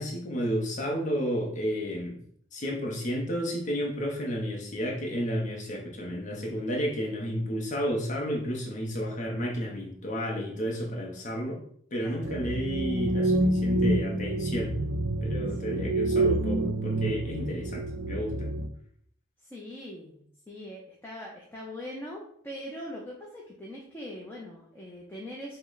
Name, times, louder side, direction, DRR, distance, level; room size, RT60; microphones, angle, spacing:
voice 1, 0.0-2.2 2.5-11.6 11.9-14.7 15.2-18.5, equal, 40° left, -1 dB, 0.8 m, -32 dB
voice 2, 12.0-12.3 15.5-15.9 19.4-25.6, left 1 dB, 10° left, -3 dB, 0.6 m, -42 dB
sound 1, 12.2-18.7, right 1 dB, 90° right, 0.5 m, -27 dB
5.6 x 2.1 x 3.9 m, 0.63 s
head